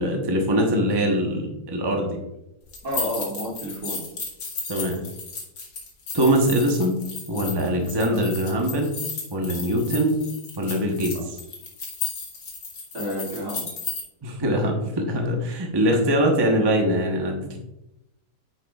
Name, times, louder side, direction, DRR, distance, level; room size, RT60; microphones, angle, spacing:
voice 1, 0.0-2.2 4.7-5.0 6.1-9.0 9.3-10.2 10.6-11.1 14.2-17.6, equal, 20° right, 1 dB, 0.9 m, -23 dB
sound 1, 2.7-14.0, left 4 dB, 85° left, 2.0 m, -34 dB
voice 2, 2.8-4.0 12.9-13.6, equal, 70° right, -5 dB, 3.3 m, -30 dB
9.4 x 6.9 x 2.4 m, 0.89 s
omnidirectional pair, 1.7 m